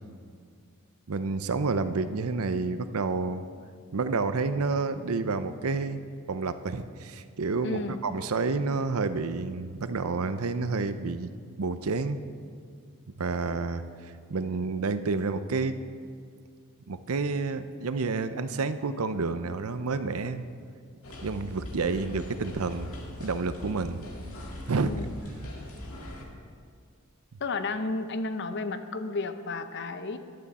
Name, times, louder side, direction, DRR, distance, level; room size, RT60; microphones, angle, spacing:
voice 1, 1.1-3.4 3.9-6.0 6.3-11.3 11.6-12.2 13.2-15.8 16.9-20.5 21.2-22.9 23.2-24.0 24.7-24.9, right 4 dB, 85° right, 11 dB, 0.6 m, -29 dB
voice 2, 7.6-8.0 24.8-25.1 27.4-30.2, left 3 dB, 55° left, 10 dB, 0.7 m, -32 dB
sound 1, 21.0-26.2, left 1 dB, 80° left, 1.9 m, -41 dB
14.0 x 11.5 x 4.2 m, 2.1 s
head